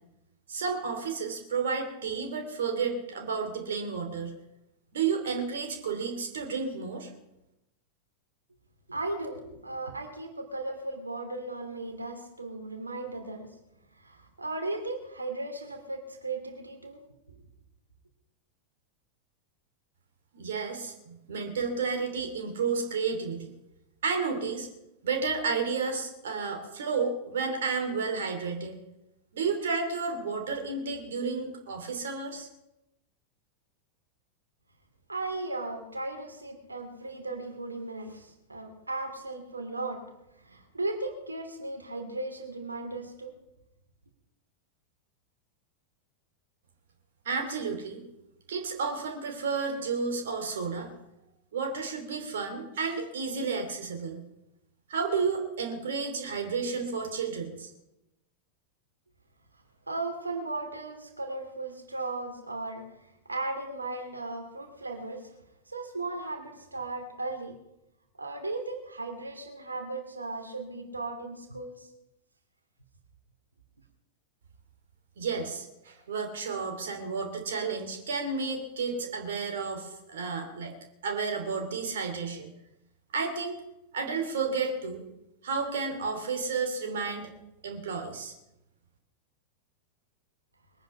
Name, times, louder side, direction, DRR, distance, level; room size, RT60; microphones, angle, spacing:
voice 1, 0.5-4.4 4.9-7.1 20.3-23.5 24.0-24.7 25.0-28.8 29.3-32.5 47.2-48.0 48.5-50.9 51.5-54.2 54.9-57.7 75.2-80.7 81.0-82.5 83.1-83.6 83.9-85.0 85.4-87.3 87.6-88.3, right 5 dB, 60° right, 4 dB, 2.7 m, -31 dB
voice 2, 8.9-13.5 13.9-17.0 17.3-17.4 35.1-40.0 40.4-43.3 59.9-65.3 65.7-67.6 68.2-71.9, right 2 dB, 80° right, 4 dB, 2.8 m, -36 dB
22.0 x 9.6 x 5.6 m, 0.89 s
figure-of-eight pair, 90°, 0 cm